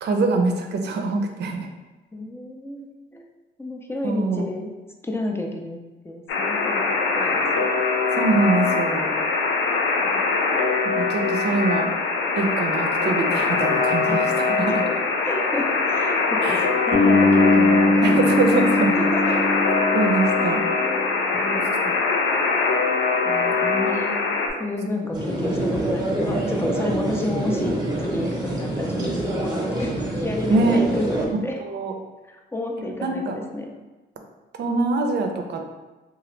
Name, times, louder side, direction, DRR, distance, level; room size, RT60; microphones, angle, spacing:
voice 1, 0.0-1.7 4.0-4.4 8.1-9.1 11.0-11.9 12.3-14.7 16.4-16.7 18.0-19.0 19.9-20.6 30.5-30.8 31.6-31.9 33.0-33.4 34.6-35.6, right 3 dB, 60° right, 4 dB, 0.5 m, -23 dB
voice 2, 2.1-3.3 3.6-4.7 5.0-5.8 6.0-6.8 7.1-7.7 10.0-10.3 14.1-14.2 14.7-14.8 15.2-18.2 18.9-19.5 21.3-21.9 23.2-24.1 24.6-31.6 32.3-33.7, left 1 dB, 10° left, 1 dB, 0.5 m, -30 dB
Alarm, 6.3-24.5, left 4 dB, 80° left, 0.5 m, -22 dB
Bass guitar, 16.9-21.0, left 2 dB, 65° left, 1.1 m, -20 dB
sound 1, 25.1-31.2, right 1 dB, 20° right, 0.9 m, -26 dB
2.8 x 2.4 x 3.1 m, 1.2 s
cardioid pair, 90°, 20 cm